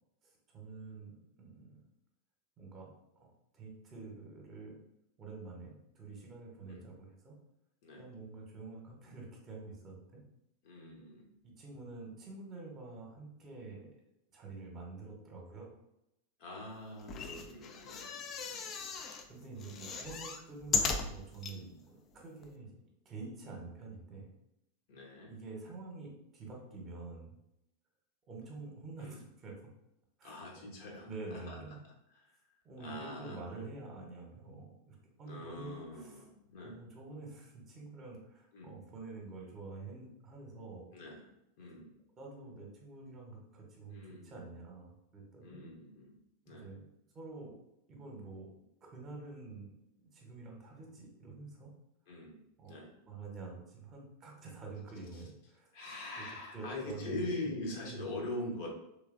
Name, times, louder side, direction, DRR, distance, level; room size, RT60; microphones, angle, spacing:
voice 1, 0.2-1.9 2.6-4.8 5.2-7.4 8.0-10.2 11.4-13.9 14.3-15.7 18.4-22.7 23.0-24.3 25.3-27.3 28.3-29.5 30.2-30.3 30.6-30.7 31.0-31.8 32.6-36.2 36.6-40.9 42.2-45.6 46.4-46.8 47.1-47.5 47.9-48.5 48.8-49.7 50.0-51.7 52.6-52.8 53.1-55.7 56.2-56.3 56.5-57.5 57.8-58.0, right 3 dB, 30° right, -1 dB, 0.9 m, -48 dB
voice 2, 10.6-11.3 16.4-18.1 19.5-19.8 21.4-21.7 24.9-25.3 29.0-29.2 30.2-31.6 32.2-32.4 32.8-33.4 35.2-36.8 38.5-38.8 40.9-41.3 41.6-41.9 43.9-44.5 45.4-46.2 46.5-46.7 52.1-52.4 52.7-52.9 55.1-55.2 55.7-58.7, left 2 dB, 50° left, -1 dB, 0.9 m, -43 dB
sound 1, 17.0-19.2 19.6-21.6 22.1-22.2 22.4-22.5, left 5 dB, 30° left, 0.4 m, -37 dB
3.2 x 3.2 x 2.5 m, 0.83 s
figure-of-eight pair, 90°, 0 cm